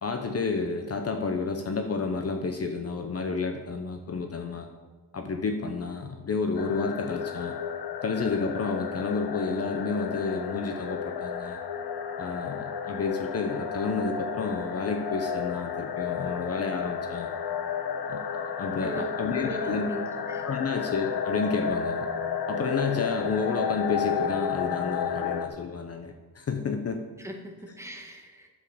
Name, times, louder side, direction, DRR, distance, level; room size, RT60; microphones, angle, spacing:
voice 1, 0.0-4.7 5.1-7.6 8.0-11.6 12.2-17.3 18.1-18.2 18.6-19.9 20.4-22.1 22.5-27.0, left 4 dB, 35° left, 6 dB, 0.9 m, -30 dB
sound 1, 6.6-25.5, left 7 dB, 65° left, 1.0 m, -32 dB
voice 2, 18.8-19.1 19.4-20.4 27.2-28.5, equal, 5° right, 2 dB, 1.5 m, -38 dB
8.5 x 7.5 x 7.1 m, 1.3 s
cardioid pair, 125°, 41 cm